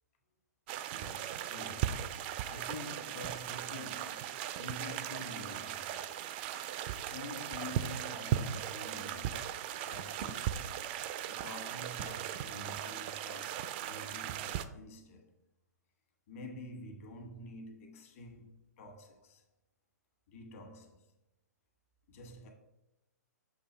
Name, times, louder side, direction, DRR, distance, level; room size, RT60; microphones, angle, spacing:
sound 1, 0.7-14.6, right 10 dB, 35° right, 0.3 m, -38 dB
voice 1, 0.9-6.0 7.0-9.4 9.7-10.7 11.3-15.3 16.3-19.4 20.3-21.1 22.1-22.5, left 1 dB, 50° left, 1.4 m, -48 dB
7.3 x 2.7 x 5.0 m
hypercardioid pair, 130°, 10 cm